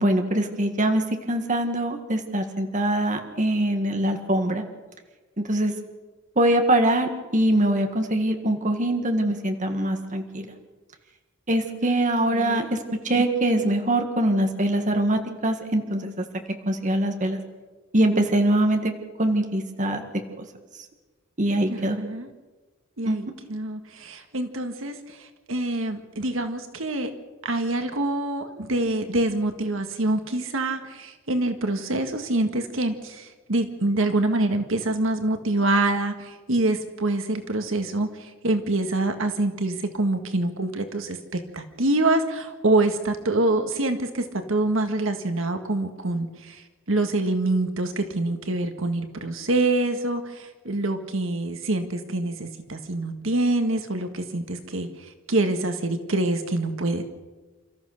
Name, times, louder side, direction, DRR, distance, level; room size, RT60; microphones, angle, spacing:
voice 1, 0.0-4.6 5.4-5.7 6.4-10.5 11.5-12.8 13.0-16.3 16.7-17.4 17.9-18.9 19.2-20.0 20.4-20.5 21.4-22.0 23.1-23.2, right 1 dB, 35° right, 5 dB, 1.8 m, -23 dB
voice 2, 12.3-12.7 13.1-13.2 21.7-22.3 23.0-27.1 27.4-57.0, right 2 dB, 65° right, 7 dB, 1.7 m, -26 dB
29.0 x 14.0 x 6.5 m, 1.3 s
head